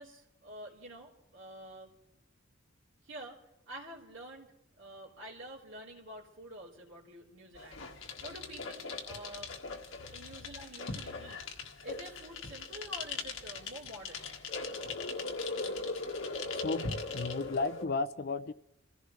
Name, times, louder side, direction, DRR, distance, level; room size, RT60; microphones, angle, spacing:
voice 1, 0.0-1.9 3.0-3.4 3.7-4.5 4.8-9.5 10.1-11.4 11.8-14.3, right 1 dB, 70° right, 3.6 m, -48 dB
sound 1, 7.5-17.8, left 3 dB, 80° left, 1.7 m, -39 dB
voice 2, 16.5-16.9 17.1-18.5, left 3 dB, 50° left, 0.5 m, -33 dB
27.0 x 15.5 x 3.2 m
head